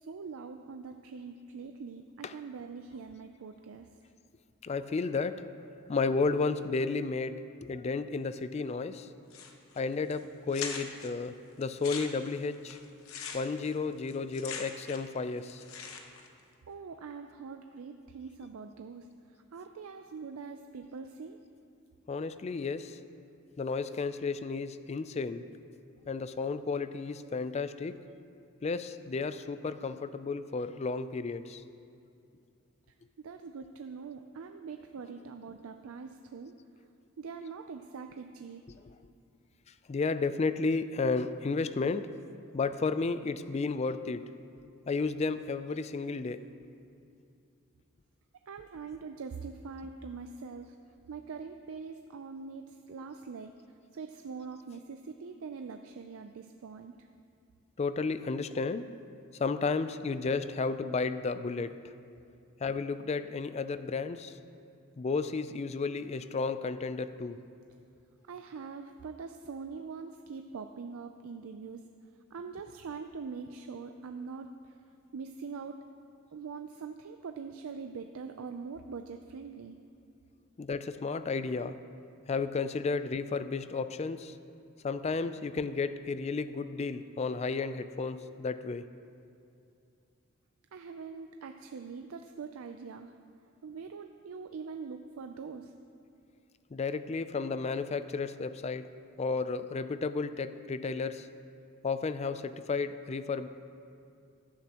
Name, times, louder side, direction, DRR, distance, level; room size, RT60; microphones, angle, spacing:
voice 1, 0.0-3.9 16.7-19.1 19.5-21.4 33.2-36.6 37.2-38.6 48.5-50.8 51.1-53.5 53.9-57.1 68.3-71.8 72.3-74.7 75.1-75.8 76.3-79.8 90.7-93.1 93.6-95.7, right 5 dB, 80° right, 6 dB, 0.4 m, -43 dB
voice 2, 4.6-5.4 5.9-7.4 7.7-9.1 9.8-12.8 13.3-15.6 22.1-23.0 23.6-25.5 26.1-28.0 28.6-31.6 39.9-42.1 42.5-44.2 44.9-46.4 57.8-58.9 59.4-61.7 62.6-64.3 65.0-67.4 80.6-81.8 82.3-84.3 84.8-88.8 96.7-98.9 99.2-101.3 101.8-103.5, left 4 dB, 30° left, 12 dB, 0.3 m, -32 dB
sound 1, 9.3-9.8 10.1-10.2 10.5-11.1 11.6-15.2 15.4-16.3, left 6 dB, 85° left, 1.0 m, -41 dB
14.5 x 11.5 x 2.9 m, 2.5 s
head